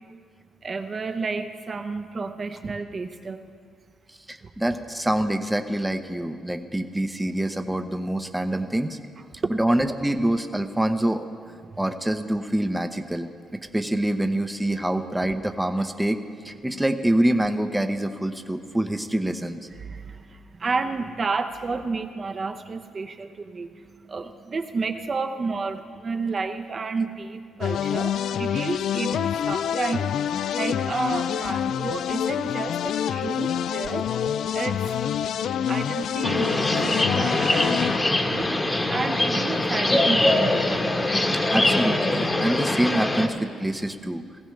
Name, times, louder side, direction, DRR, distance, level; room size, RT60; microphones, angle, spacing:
voice 1, 0.6-3.5 4.4-4.5 9.4-9.5 11.6-11.8 16.7-16.8 19.7-41.4, right 4 dB, 40° right, 6 dB, 0.8 m, -31 dB
voice 2, 4.3-9.0 9.6-11.3 11.8-19.6 41.5-44.3, right 1 dB, 5° right, 6 dB, 0.8 m, -25 dB
sound 1, 27.6-38.0, left 9 dB, 70° left, 0.3 m, -27 dB
sound 2, 36.2-43.3, left 2 dB, 20° left, 1.3 m, -23 dB
18.5 x 15.5 x 3.3 m, 2.1 s
cardioid pair, 90°, 0 cm